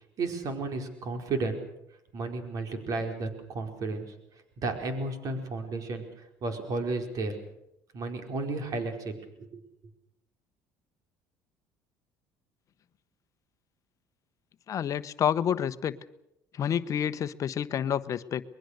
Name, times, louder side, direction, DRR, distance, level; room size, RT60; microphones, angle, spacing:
voice 1, 0.2-1.6 2.1-4.1 4.6-6.0 6.4-7.4 7.9-9.1 9.4-9.6, right 3 dB, 55° right, 5 dB, 4.7 m, -33 dB
voice 2, 14.7-16.0 16.5-18.4, left 9 dB, 50° left, 13 dB, 1.0 m, -29 dB
23.5 x 21.5 x 6.7 m, 0.83 s
supercardioid pair, 90°, 7 cm